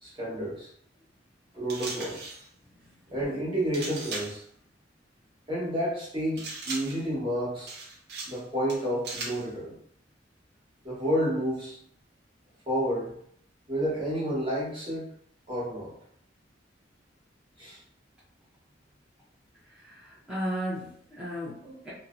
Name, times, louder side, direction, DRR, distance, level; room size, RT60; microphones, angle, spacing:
voice 1, 0.0-0.7 1.5-2.3 3.1-4.4 5.5-7.7 8.3-9.8 10.8-11.8 12.7-13.1 13.7-15.1 15.5-15.9 17.6-17.8, equal, 30° right, -7 dB, 1.1 m, -30 dB
sound 1, 1.7-2.5 3.7-4.4 6.4-7.1 7.7-8.4 8.7-9.5, right 3 dB, 55° right, 0.6 m, -38 dB
voice 2, 19.8-21.9, equal, 5° right, -10 dB, 0.5 m, -35 dB
2.6 x 2.0 x 2.4 m, 0.66 s
head